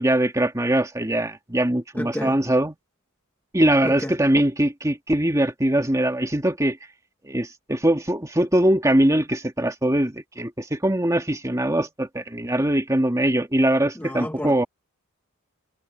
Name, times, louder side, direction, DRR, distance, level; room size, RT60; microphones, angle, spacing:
voice 1, 0.0-2.8 3.5-6.8 7.2-14.7, right 1 dB, 15° right, 2.0 m, -22 dB
voice 2, 2.0-2.4 3.8-4.1 14.0-14.6, left 1 dB, 10° left, 1.1 m, -31 dB
head